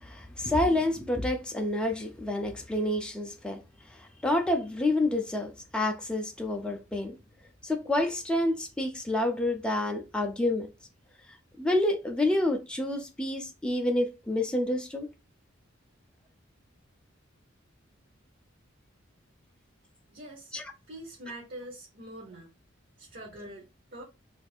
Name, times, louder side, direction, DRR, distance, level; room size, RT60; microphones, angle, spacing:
voice 1, 0.0-3.6 4.0-7.2 7.6-10.7 11.6-15.1 20.5-20.7, left 1 dB, 5° left, 0.4 m, -28 dB
voice 2, 20.1-20.6 20.9-22.5 23.0-24.0, right 1 dB, 50° right, 0.8 m, -44 dB
2.5 x 2.4 x 4.1 m
head